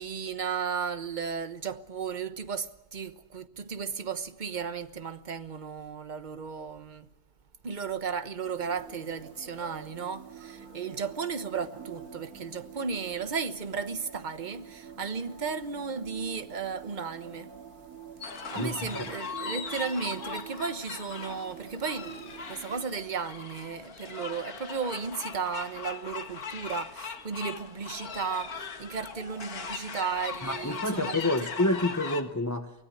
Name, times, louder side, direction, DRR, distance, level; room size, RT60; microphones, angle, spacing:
voice 1, 0.0-7.1 7.6-17.5 18.5-31.2, right 6 dB, 35° right, 1.2 m, -34 dB
sound 1, 8.4-22.9, right 8 dB, 75° right, 3.0 m, -47 dB
sound 2, 18.2-32.2, left 5 dB, 75° left, 2.1 m, -39 dB
voice 2, 18.5-19.0 30.4-32.7, left 2 dB, 15° left, 1.1 m, -28 dB
24.0 x 17.0 x 9.9 m
omnidirectional pair, 1.6 m